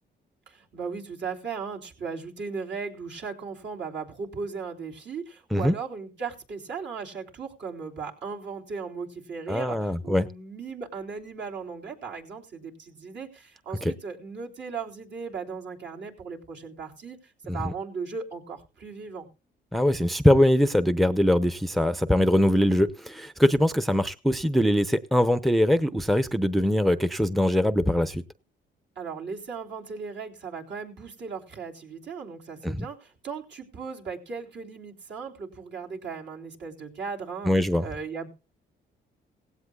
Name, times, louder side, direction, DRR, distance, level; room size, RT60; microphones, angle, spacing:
voice 1, 0.5-19.3 29.0-37.5 37.8-38.3, right 5 dB, 60° right, 3.8 m, -37 dB
voice 2, 9.5-10.3 13.8-13.9 17.5-17.7 19.7-28.2 32.6-32.8 37.5-37.8, equal, ahead, 0.7 m, -22 dB
17.5 x 16.0 x 2.4 m
cardioid pair, 90°, 20 cm